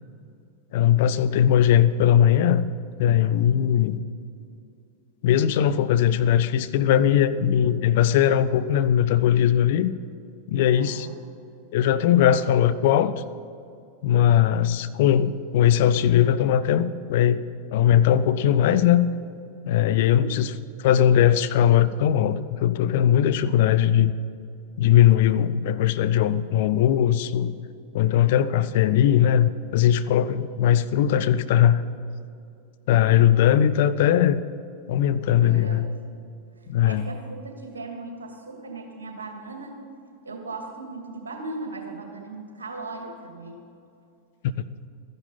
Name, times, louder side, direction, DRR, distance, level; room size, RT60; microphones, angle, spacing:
voice 1, 0.7-2.7 3.0-4.0 5.2-9.9 10.5-11.1 11.7-13.1 14.0-17.4 17.7-19.1 19.7-20.5 20.8-24.1 24.8-27.5 27.9-31.8 32.9-34.4 34.9-35.9 36.7-37.0, left 10 dB, 50° left, 13 dB, 0.5 m, -19 dB
voice 2, 10.8-11.2 19.8-20.3 35.4-35.9 36.8-39.8 40.2-43.6, right 3 dB, 70° right, 3 dB, 2.2 m, -38 dB
13.5 x 10.5 x 5.6 m, 2.6 s
figure-of-eight pair, 90°, 0 cm